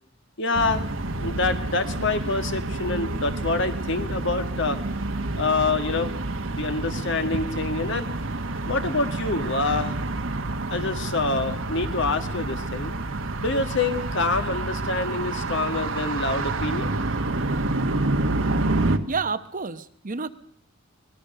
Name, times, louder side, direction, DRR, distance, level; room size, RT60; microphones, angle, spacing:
voice 1, 0.4-4.8 5.3-6.1 6.5-8.1 8.7-9.9 10.7-12.9 13.4-16.9, left 3 dB, 60° left, 8 dB, 1.8 m, -26 dB
sound 1, 0.5-19.0, right 2 dB, 65° right, 1.4 m, -28 dB
voice 2, 19.1-20.3, right 4 dB, 40° right, 12 dB, 0.9 m, -29 dB
24.0 x 19.0 x 6.7 m, 0.68 s
head